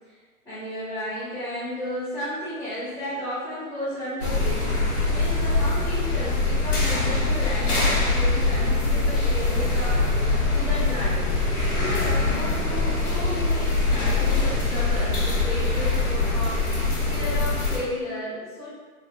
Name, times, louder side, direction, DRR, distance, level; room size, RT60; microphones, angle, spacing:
voice 1, 0.4-4.7 5.1-10.0 10.5-11.2 11.7-16.7 17.1-18.7, equal, 5° left, -13 dB, 0.8 m, -33 dB
sound 1, 4.2-17.8, left 3 dB, 90° left, 1.1 m, -23 dB
3.0 x 2.3 x 3.3 m, 1.4 s
hypercardioid pair, 130°, 43 cm